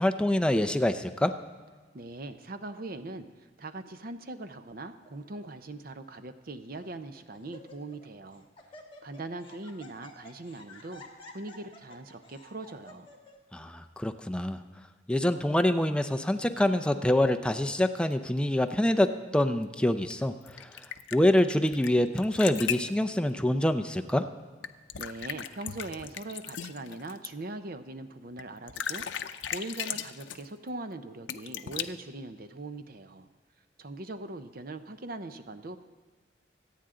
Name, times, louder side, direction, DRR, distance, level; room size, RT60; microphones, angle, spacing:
voice 1, 0.0-1.3 13.5-14.6 15.1-20.3 20.6-20.7 21.1-24.3, left 1 dB, 5° left, 8 dB, 0.5 m, -25 dB
voice 2, 1.9-3.3 3.6-8.5 9.0-11.0 11.3-13.1 25.0-33.3 33.8-35.8, right 2 dB, 55° right, 9 dB, 0.7 m, -41 dB
Laughter, 5.0-5.4 6.2-6.3 6.8-7.0 7.3-8.1 8.3-13.4, left 2 dB, 30° left, 1.6 m, -51 dB
sound 1, 20.1-21.9 22.2-22.9 24.6-27.3 28.4-28.5 28.7-30.5 31.3-31.8, left 9 dB, 85° left, 0.6 m, -37 dB
24.5 x 9.1 x 3.8 m, 1.4 s
head